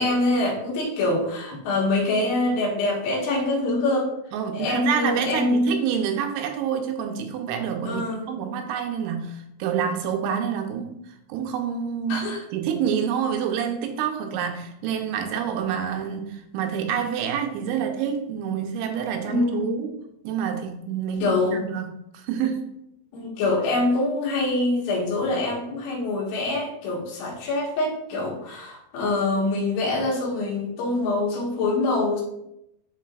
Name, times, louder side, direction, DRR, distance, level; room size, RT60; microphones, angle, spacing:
voice 1, 0.0-4.1 4.5-5.8 7.8-8.3 12.1-12.4 19.2-19.7 21.2-21.6 23.1-32.2, left 2 dB, 90° left, -3 dB, 3.9 m, -24 dB
voice 2, 4.3-11.0 11.3-20.0 20.2-22.7, right 8 dB, 85° right, 4 dB, 3.0 m, -27 dB
12.0 x 4.0 x 2.4 m, 0.83 s
omnidirectional pair, 5.2 m